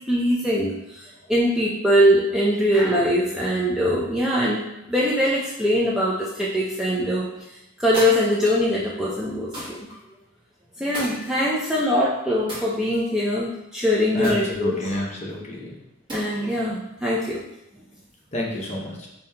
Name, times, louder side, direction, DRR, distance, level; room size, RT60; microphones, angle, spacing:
voice 1, 0.1-7.3 7.8-9.8 10.8-14.8 16.1-17.4, equal, 5° right, -7 dB, 0.3 m, -22 dB
sound 1, 7.9-8.7 9.5-10.0 10.9-11.8 12.5-13.2 14.2-15.1 16.1-16.6, equal, 25° right, 1.2 m, -36 dB
voice 2, 14.1-15.8 18.3-19.1, left 1 dB, 35° left, -3 dB, 0.7 m, -29 dB
5.0 x 2.7 x 2.2 m, 0.87 s
head